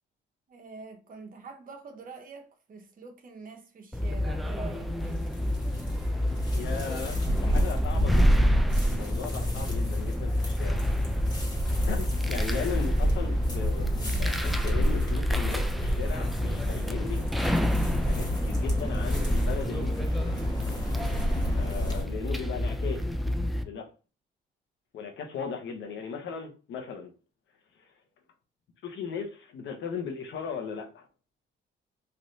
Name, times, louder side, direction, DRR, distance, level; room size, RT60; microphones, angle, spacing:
voice 1, 0.5-5.5, right 4 dB, 45° right, 0.9 m, -45 dB
sound 1, 3.9-23.6, left 1 dB, ahead, 0.3 m, -28 dB
sound 2, 4.4-22.0, equal, 20° left, 1.3 m, -32 dB
voice 2, 6.5-8.5 8.9-10.8 11.9-17.2 18.1-20.3 21.5-23.1 23.6-23.9 24.9-27.1 28.8-31.1, left 6 dB, 70° left, 0.9 m, -37 dB
3.2 x 2.6 x 2.7 m
cardioid pair, 90°, 20 cm